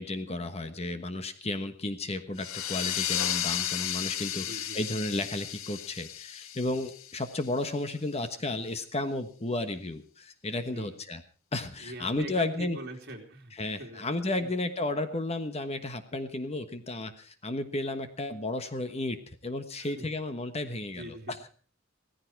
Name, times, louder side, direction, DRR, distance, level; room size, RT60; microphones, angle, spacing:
voice 1, 0.0-11.2 11.5-12.8 13.6-19.2 19.4-21.5, left 2 dB, 30° left, 9 dB, 1.3 m, -33 dB
sound 1, 2.4-7.7, left 11 dB, 85° left, 0.8 m, -34 dB
voice 2, 4.4-4.8 10.7-11.0 11.8-14.1 14.4-14.5 19.8-20.1 20.9-21.5, right 1 dB, 50° right, 2 dB, 3.3 m, -43 dB
16.5 x 15.0 x 4.7 m, 0.39 s
head